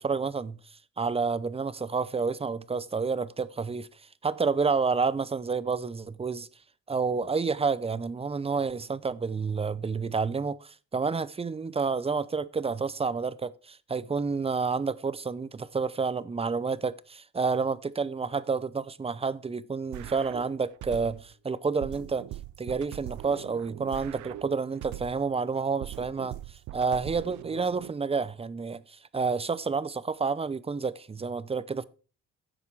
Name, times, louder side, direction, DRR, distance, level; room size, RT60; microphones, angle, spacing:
voice 1, 0.0-6.5 6.9-22.3 22.6-31.8, right 5 dB, 20° right, 0.6 m, -29 dB
sound 1, 19.9-21.3 21.8-25.3 25.8-27.9, right 16 dB, 75° right, 0.5 m, -41 dB
10.5 x 7.2 x 4.7 m
cardioid pair, 90°, 30 cm